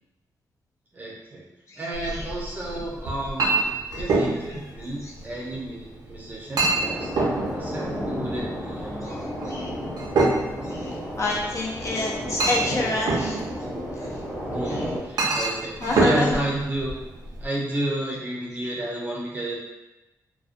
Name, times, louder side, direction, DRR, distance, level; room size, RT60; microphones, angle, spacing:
voice 1, 0.9-1.5 1.7-9.2 14.5-16.9 17.4-19.5, right 1 dB, 25° right, -4 dB, 0.5 m, -32 dB
Chink clink, 1.9-17.5, right 3 dB, 70° right, 0.5 m, -28 dB
sound 1, 6.7-15.0, equal, 5° left, 0.8 m, -32 dB
voice 2, 10.6-13.4 14.0-14.1 15.8-16.4, left 2 dB, 45° left, -2 dB, 0.4 m, -27 dB
2.4 x 2.1 x 2.5 m, 0.98 s
wide cardioid pair, 170°, 7 cm